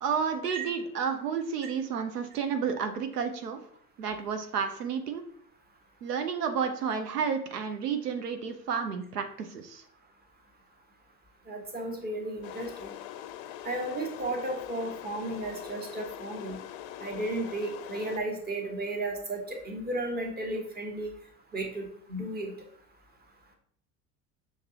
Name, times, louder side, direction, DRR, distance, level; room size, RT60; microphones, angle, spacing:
voice 1, 0.0-3.6 4.0-5.2 6.0-9.8, right 6 dB, 90° right, 7 dB, 0.6 m, -31 dB
voice 2, 11.5-12.9 13.6-16.6 17.0-21.1 21.5-22.5, right 2 dB, 20° right, 2 dB, 1.1 m, -34 dB
sound 1, 12.4-18.2, left 12 dB, 60° left, 0.5 m, -43 dB
5.8 x 2.8 x 2.8 m, 0.62 s
hypercardioid pair, 75°, 46 cm